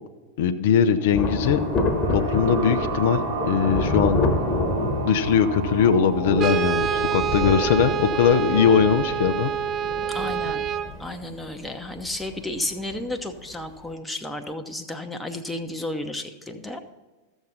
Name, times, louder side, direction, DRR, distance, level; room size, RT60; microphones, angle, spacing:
voice 1, 0.4-1.6 2.1-4.2 5.0-9.5, left 7 dB, 55° left, 8 dB, 0.5 m, -21 dB
sound 1, 0.9-8.4, right 4 dB, 55° right, 2.3 m, -32 dB
Thunder, 1.1-13.1 13.4-13.5, left 2 dB, 20° left, 1.2 m, -28 dB
Brass instrument, 6.4-10.9, right 9 dB, 30° right, 0.4 m, -27 dB
voice 2, 10.1-10.7 11.0-16.8, left 1 dB, 5° left, 5 dB, 0.9 m, -32 dB
14.0 x 7.0 x 4.0 m, 1.3 s
figure-of-eight pair, 90°, 0 cm